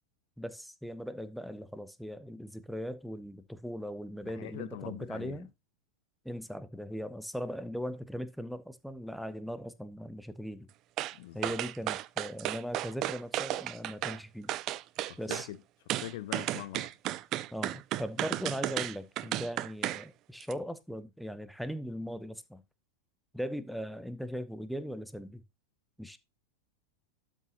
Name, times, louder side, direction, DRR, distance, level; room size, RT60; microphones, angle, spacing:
voice 1, 0.4-5.5 6.2-10.7 11.3-14.5 15.2-15.5 17.5-22.6 23.3-25.4 26.0-26.2, equal, ahead, 0.8 m, -39 dB
voice 2, 4.2-5.4 11.1-11.6 15.0-15.6 15.9-16.9, left 14 dB, 50° left, 0.6 m, -43 dB
sound 1, 11.0-11.2 11.4-14.2 14.5-15.5 15.9-20.0 20.4-20.5, right 14 dB, 35° right, 0.4 m, -34 dB
12.0 x 6.5 x 2.9 m
figure-of-eight pair, 90°, 0 cm